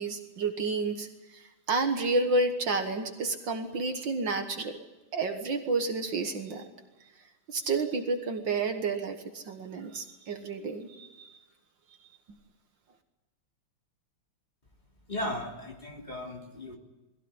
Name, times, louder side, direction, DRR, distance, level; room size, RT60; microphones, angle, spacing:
voice 1, 0.0-4.8 5.1-6.7 7.5-11.4, right 3 dB, 60° right, 6 dB, 2.1 m, -30 dB
voice 2, 15.1-16.8, left 1 dB, 20° left, 1 dB, 2.9 m, -36 dB
21.0 x 16.5 x 9.7 m, 1.1 s
omnidirectional pair, 2.3 m